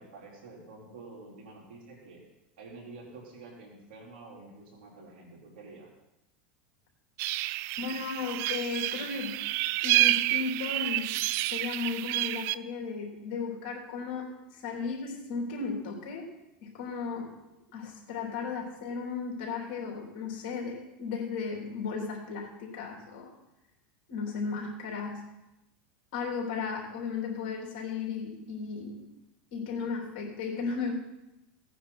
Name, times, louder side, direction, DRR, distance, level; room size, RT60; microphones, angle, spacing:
voice 1, 0.0-2.2 2.6-5.9, right 3 dB, 80° right, -2 dB, 4.3 m, -48 dB
sound 1, 7.2-12.5, right 18 dB, 55° right, 0.4 m, -29 dB
voice 2, 7.8-9.4 9.8-11.1 11.4-16.3 16.6-17.3 17.7-23.3 24.1-25.2 26.1-29.1 29.5-30.9, left 5 dB, 65° left, 0 dB, 3.4 m, -35 dB
17.5 x 9.3 x 4.4 m, 0.93 s
supercardioid pair, 110°, 5 cm